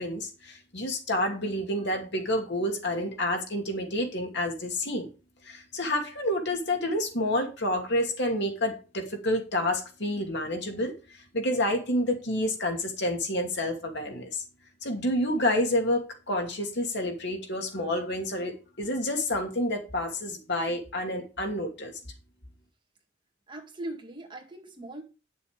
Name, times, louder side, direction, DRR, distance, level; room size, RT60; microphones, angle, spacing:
voice 1, 0.0-5.1 5.4-14.4 14.8-21.9, left 1 dB, 60° left, 2 dB, 2.6 m, -29 dB
voice 2, 23.5-25.0, right 1 dB, 25° right, 1 dB, 2.0 m, -40 dB
10.5 x 7.0 x 5.1 m, 0.32 s
head